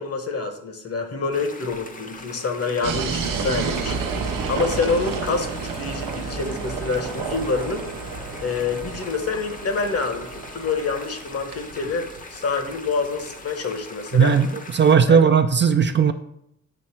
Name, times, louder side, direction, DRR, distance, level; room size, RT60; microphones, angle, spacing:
voice 1, 0.0-4.0 4.5-7.9 8.4-14.3 15.1-15.2, left 4 dB, 50° left, 6 dB, 1.0 m, -27 dB
sound 1, 1.3-15.0, left 3 dB, 25° left, 0.7 m, -41 dB
sound 2, 2.8-13.5, right 5 dB, 90° right, 0.8 m, -31 dB
Trumpet, 3.1-11.3, left 1 dB, 80° left, 1.9 m, -46 dB
voice 2, 14.1-16.1, right 6 dB, 35° right, 9 dB, 0.4 m, -17 dB
7.5 x 3.1 x 4.4 m, 0.75 s
cardioid pair, 75°, 32 cm